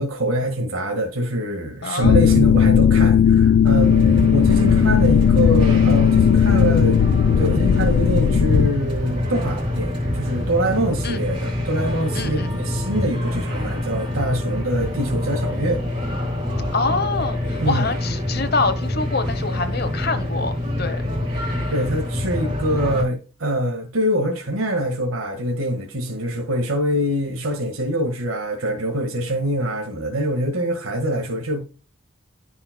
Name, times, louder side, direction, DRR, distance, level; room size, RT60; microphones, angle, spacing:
voice 1, 0.0-7.0 7.4-15.8 17.6-17.9 21.7-31.6, right 1 dB, 85° right, 1.7 m, -24 dB
voice 2, 1.8-2.3 11.0-11.2 12.1-12.6 16.7-21.0, left 3 dB, 50° left, 1.1 m, -25 dB
sound 1, 2.0-8.7, left 8 dB, 80° left, 0.3 m, -16 dB
sound 2, 3.6-23.0, left 1 dB, 25° right, 3.8 m, -25 dB
14.5 x 5.6 x 2.3 m
head